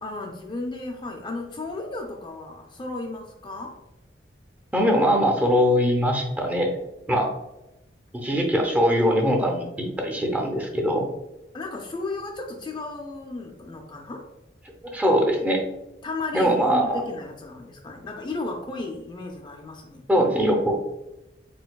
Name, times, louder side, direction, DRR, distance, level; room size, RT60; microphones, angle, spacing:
voice 1, 0.0-3.8 7.2-7.3 11.5-14.3 16.0-20.0, left 2 dB, 25° left, 1 dB, 0.4 m, -34 dB
voice 2, 4.7-6.7 7.1-7.3 8.1-11.0 14.8-15.6 16.3-17.0 20.1-20.7, equal, 10° right, 1 dB, 0.6 m, -22 dB
4.5 x 3.9 x 2.3 m, 0.95 s
head